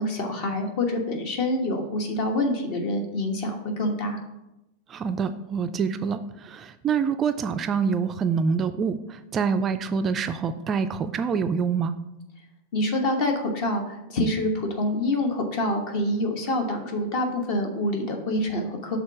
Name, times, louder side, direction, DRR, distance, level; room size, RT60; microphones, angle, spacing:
voice 1, 0.0-4.2 12.7-19.0, left 1 dB, 45° left, 3 dB, 1.2 m, -26 dB
voice 2, 4.9-11.9, right 6 dB, 25° right, 10 dB, 0.3 m, -26 dB
6.4 x 3.8 x 5.7 m, 0.92 s
figure-of-eight pair, 90°, 0 cm